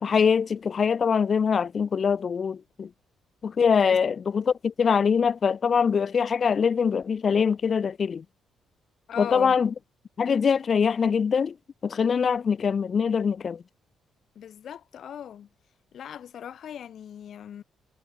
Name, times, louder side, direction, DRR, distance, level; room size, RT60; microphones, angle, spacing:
voice 1, 0.0-2.9 3.4-8.2 9.2-9.7 10.2-11.6 11.8-13.6, left 6 dB, 45° left, 0.3 m, -23 dB
voice 2, 9.1-9.6 14.3-15.5 15.9-17.6, left 9 dB, 65° left, 5.3 m, -39 dB
cardioid pair, 90°, 0 cm